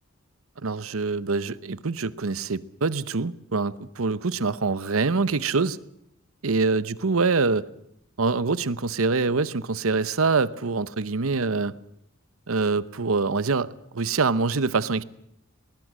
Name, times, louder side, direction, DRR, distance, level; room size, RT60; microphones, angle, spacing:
voice 1, 0.6-5.8 6.4-7.7 8.2-11.8 12.5-15.0, right 4 dB, 85° right, 0.9 m, -25 dB
20.5 x 20.0 x 7.6 m
head